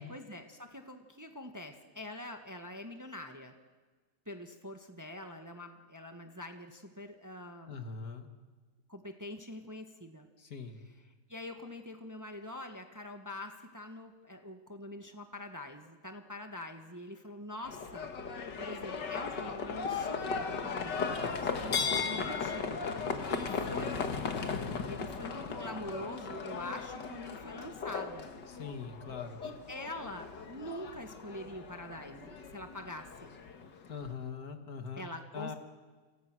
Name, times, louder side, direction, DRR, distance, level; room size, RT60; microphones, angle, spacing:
voice 1, 0.0-3.5 4.2-7.8 8.9-10.3 11.3-18.1 18.6-21.0 21.4-22.8 23.3-28.3 29.4-33.3 35.0-35.5, left 1 dB, 10° right, 5 dB, 1.5 m, -45 dB
voice 2, 7.7-8.3 10.4-10.8 23.7-24.8 28.5-29.4 33.9-35.0 35.3-35.6, left 5 dB, 60° left, 6 dB, 2.3 m, -42 dB
Livestock farm animals working animals, 17.6-34.1, left 5 dB, 80° left, 2.3 m, -37 dB
28.5 x 28.5 x 6.3 m, 1.4 s
omnidirectional pair, 1.8 m